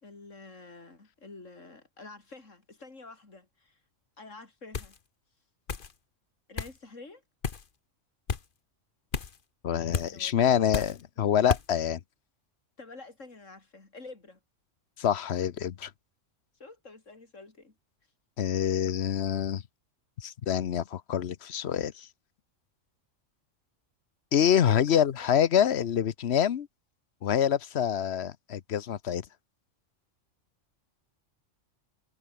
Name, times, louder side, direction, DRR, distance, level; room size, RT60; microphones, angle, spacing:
voice 1, 0.0-3.8 4.2-5.0 6.5-7.2 10.0-10.9 12.8-14.4 16.6-17.7 24.7-25.7, left 3 dB, 80° left, 4.1 m, -48 dB
sound 1, 4.7-5.0 5.7-5.9 6.6-6.8 7.4-7.7 8.3-8.4 9.1-9.4 9.9-10.1 10.7-11.0 11.5-11.7, left 5 dB, 45° left, 1.3 m, -32 dB
voice 2, 9.6-12.0 15.0-15.9 18.4-19.6 20.2-22.1 24.3-26.7 27.2-29.2, left 9 dB, 60° left, 1.1 m, -26 dB
omnidirectional pair, 1.3 m